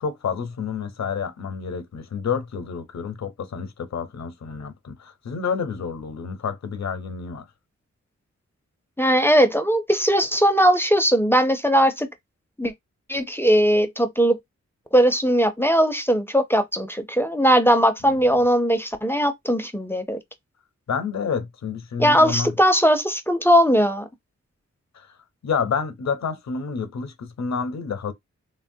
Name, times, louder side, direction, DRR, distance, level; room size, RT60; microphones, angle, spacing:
voice 1, 0.0-7.5 18.0-18.4 20.9-22.5 24.9-25.1 25.4-28.1, left 6 dB, 70° left, 0.6 m, -29 dB
voice 2, 9.0-12.1 12.6-12.7 13.1-14.4 14.9-20.2 22.0-24.1, equal, 10° left, 0.4 m, -19 dB
3.2 x 2.2 x 2.6 m
wide cardioid pair, 110°, 29 cm